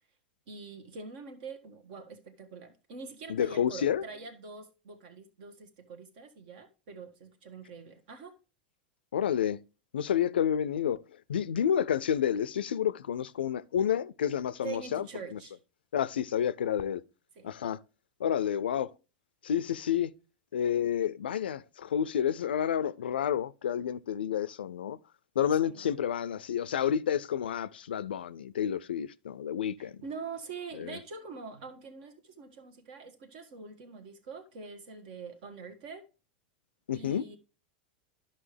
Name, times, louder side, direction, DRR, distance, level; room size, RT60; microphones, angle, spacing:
voice 1, 0.5-8.4 14.6-15.6 17.3-17.5 25.6-25.9 29.8-36.0 36.9-37.4, right 5 dB, 65° right, 1.4 m, -44 dB
voice 2, 3.3-4.0 9.1-9.6 9.9-11.0 11.3-15.4 15.9-17.0 17.4-17.8 18.2-18.9 19.4-20.1 20.5-25.0 25.4-30.0 30.8-31.0 36.9-37.3, left 9 dB, 90° left, 0.4 m, -30 dB
11.0 x 5.5 x 3.2 m
hypercardioid pair, 105°, 5 cm